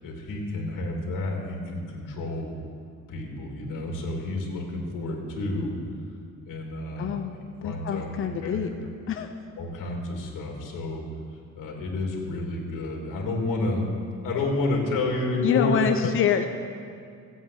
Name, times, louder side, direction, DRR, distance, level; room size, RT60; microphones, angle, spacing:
voice 1, 0.0-2.5 3.1-5.7 6.5-7.2 7.6-8.6 9.6-11.0 11.5-13.9 14.2-16.3, left 2 dB, 80° left, 0 dB, 3.2 m, -30 dB
voice 2, 7.0-8.7 9.1-9.3 15.4-16.5, left 8 dB, 40° left, 6 dB, 0.8 m, -26 dB
15.5 x 8.3 x 8.7 m, 2.3 s
cardioid pair, 140°, 31 cm